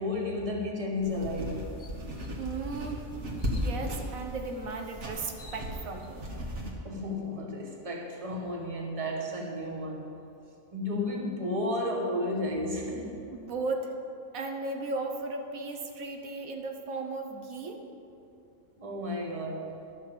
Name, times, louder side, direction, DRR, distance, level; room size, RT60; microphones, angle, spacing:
voice 1, 0.0-1.7 6.8-10.2 10.7-13.1 18.8-19.8, left 1 dB, 25° right, 0 dB, 1.4 m, -32 dB
sound 1, 0.7-0.9 1.4-1.5 1.8-2.3 3.4-3.7 4.9-5.0 5.1-6.1, left 3 dB, 50° left, 1.2 m, -53 dB
sound 2, 1.0-6.7, equal, 55° right, 1.9 m, -36 dB
voice 2, 2.4-3.0 3.5-6.2 13.3-13.9 14.3-17.8, right 3 dB, 85° right, 4 dB, 1.4 m, -36 dB
11.5 x 6.5 x 7.4 m, 2.6 s
omnidirectional pair, 1.4 m